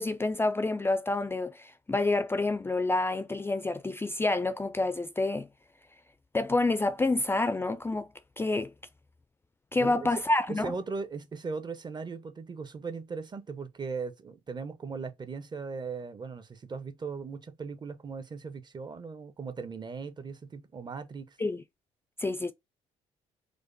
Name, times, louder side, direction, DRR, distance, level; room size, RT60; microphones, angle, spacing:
voice 1, 0.0-5.5 6.3-8.1 8.4-8.7 9.7-10.7 21.4-21.6 22.2-22.5, left 2 dB, 15° left, 0.4 m, -28 dB
voice 2, 10.5-21.4, right 4 dB, 30° right, 0.7 m, -38 dB
4.9 x 2.1 x 2.6 m
hypercardioid pair, 55°, 14 cm